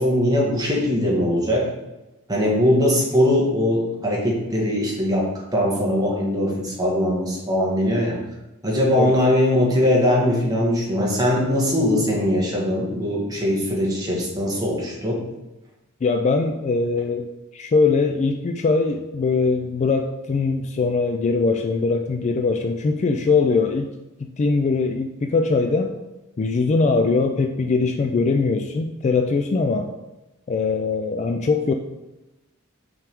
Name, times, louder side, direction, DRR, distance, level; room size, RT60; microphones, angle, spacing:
voice 1, 0.0-1.6 2.3-8.2 8.6-15.2, left 1 dB, 20° right, -4 dB, 1.6 m, -21 dB
voice 2, 16.0-17.3 17.5-23.9 24.2-25.9 26.4-29.9 30.5-31.7, left 4 dB, 30° left, 6 dB, 0.3 m, -21 dB
5.8 x 4.6 x 3.6 m, 1.0 s
head